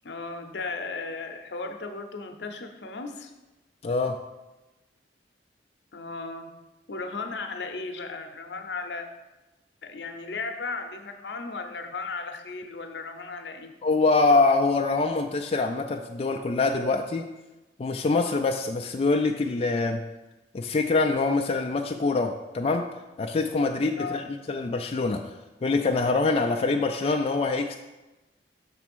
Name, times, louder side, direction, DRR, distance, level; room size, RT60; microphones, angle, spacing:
voice 1, 0.0-3.3 5.9-6.5 6.9-9.1 9.8-13.7 24.0-24.2, left 3 dB, 75° left, 6 dB, 0.7 m, -35 dB
voice 2, 3.8-4.2 13.8-17.3 17.8-20.0 20.5-22.8 23.2-25.2 25.6-27.8, left 3 dB, 35° left, 3 dB, 0.3 m, -24 dB
6.1 x 3.5 x 6.0 m, 1.1 s
head